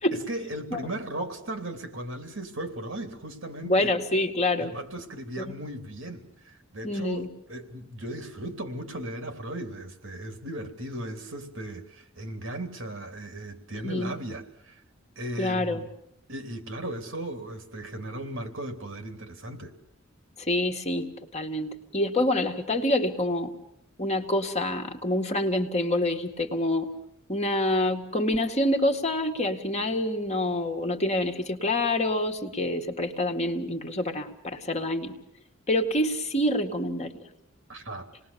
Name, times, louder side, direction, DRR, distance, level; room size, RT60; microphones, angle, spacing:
voice 1, 0.1-3.9 4.6-14.8 15.1-15.9 16.3-19.7 37.7-38.1, right 1 dB, 65° right, 6 dB, 3.2 m, -37 dB
voice 2, 3.6-4.7 6.8-7.3 13.8-14.1 15.4-15.8 20.4-23.5 24.0-26.9 27.3-35.1 35.7-37.1, left 1 dB, 30° left, 4 dB, 2.1 m, -27 dB
28.0 x 20.0 x 7.1 m, 0.75 s
head